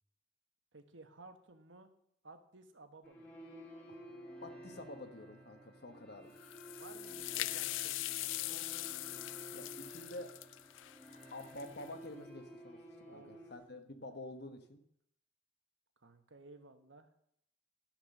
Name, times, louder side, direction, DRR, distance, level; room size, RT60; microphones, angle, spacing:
voice 1, 0.7-1.9 2.2-3.3 6.8-8.7 13.1-13.8 16.0-17.1, right 3 dB, 75° right, 8 dB, 1.3 m, -57 dB
sound 1, 3.0-13.6, equal, 10° left, 1.5 m, -53 dB
voice 2, 4.4-6.3 9.5-10.4 11.3-14.8, left 1 dB, 55° left, 7 dB, 1.3 m, -48 dB
sound 2, 6.4-11.9, left 18 dB, 75° left, 0.3 m, -41 dB
12.0 x 6.1 x 6.6 m, 0.71 s
head